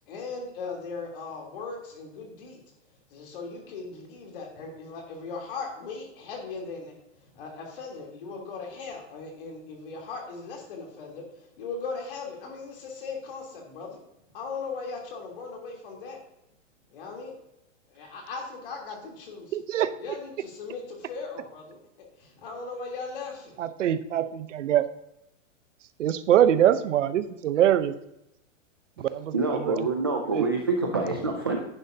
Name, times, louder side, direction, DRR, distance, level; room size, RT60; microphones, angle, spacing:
voice 1, 0.1-2.6 3.1-6.9 7.3-14.0 14.3-16.2 16.9-17.3 17.9-19.5 20.0-23.6, left 4 dB, 45° left, 0 dB, 3.2 m, -38 dB
voice 2, 19.5-19.9 23.6-24.9 26.0-27.9 29.0-29.3 29.6-29.8 30.3-30.4, right 11 dB, 70° right, 13 dB, 0.8 m, -23 dB
voice 3, 29.3-31.6, right 3 dB, 20° right, 1 dB, 0.3 m, -26 dB
10.5 x 10.5 x 2.8 m, 0.84 s
supercardioid pair, 175°, 38 cm